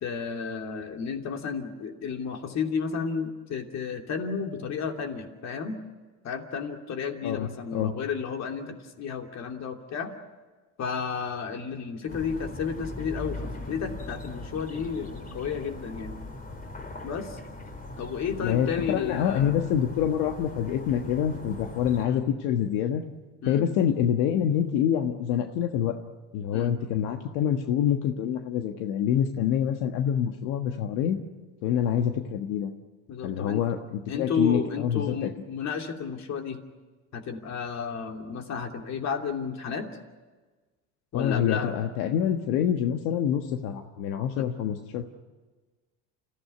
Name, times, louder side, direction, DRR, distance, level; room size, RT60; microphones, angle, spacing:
voice 1, 0.0-5.8 6.2-10.1 10.8-13.4 13.7-16.1 17.0-17.4 18.0-19.5 22.0-22.2 23.4-23.7 26.5-26.7 31.8-31.9 33.1-33.6 34.1-36.6 37.1-39.9 41.1-41.7 44.4-44.5, left 6 dB, 50° left, 4 dB, 3.0 m, -32 dB
voice 2, 7.2-7.9 18.4-23.0 23.5-25.9 26.3-31.2 31.6-32.7 33.2-35.3 41.1-45.0, left 9 dB, 80° left, 5 dB, 1.5 m, -26 dB
sound 1, 12.1-22.0, left 2 dB, 25° left, 3.4 m, -40 dB
29.0 x 15.5 x 9.5 m, 1.3 s
supercardioid pair, 115°, 35 cm